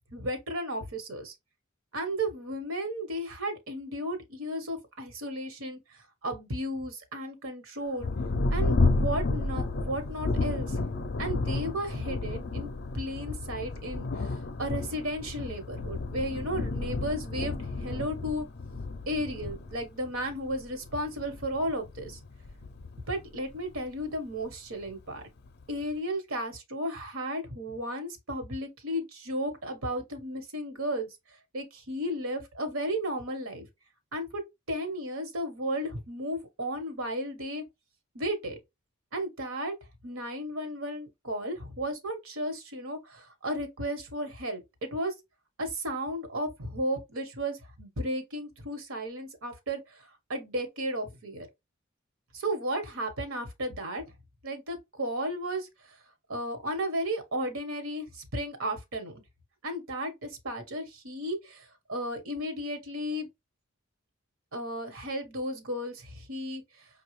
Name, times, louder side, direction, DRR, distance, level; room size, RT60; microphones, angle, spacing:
voice 1, 0.1-1.3 1.9-8.1 8.5-10.8 11.2-18.5 19.1-22.2 23.1-25.2 25.7-31.2 31.5-33.7 34.1-34.4 34.7-37.6 38.1-38.6 39.1-39.7 40.0-45.1 45.6-51.5 52.3-54.0 54.4-56.0 56.3-59.1 59.6-63.3 64.5-66.9, equal, 75° right, 1.2 m, -34 dB
Thunder, 8.0-24.1 24.8-24.9 25.5-25.9, left 3 dB, 50° left, 0.5 m, -32 dB
5.6 x 2.3 x 3.1 m
head